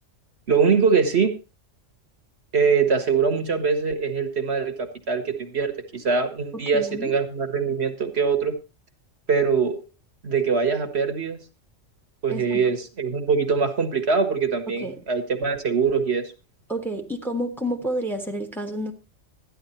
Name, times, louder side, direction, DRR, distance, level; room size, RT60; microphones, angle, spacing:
voice 1, 0.5-1.3 2.5-8.5 9.3-9.8 10.2-11.4 12.2-16.3, right 5 dB, 55° right, 1.5 m, -23 dB
voice 2, 6.5-7.1 12.3-12.6 14.8-14.9 16.7-18.9, equal, ahead, 1.4 m, -29 dB
12.5 x 10.0 x 4.3 m
omnidirectional pair, 1.3 m